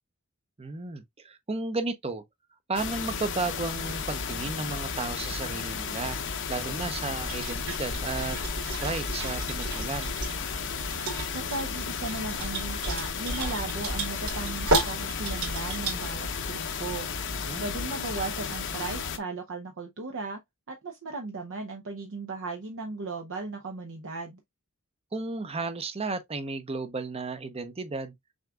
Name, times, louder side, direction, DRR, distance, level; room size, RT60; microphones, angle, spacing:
voice 1, 0.6-2.2 2.7-6.2 6.5-8.4 8.8-10.2 17.3-17.6 25.1-28.1, right 3 dB, 25° right, 0.7 m, -33 dB
sound 1, 2.7-19.2, left 5 dB, 55° left, 0.8 m, -33 dB
sound 2, 7.2-16.1, right 2 dB, 90° right, 2.6 m, -33 dB
voice 2, 11.3-17.1 17.6-20.4 20.7-24.4, right 3 dB, 60° right, 0.7 m, -36 dB
6.3 x 3.5 x 2.3 m
head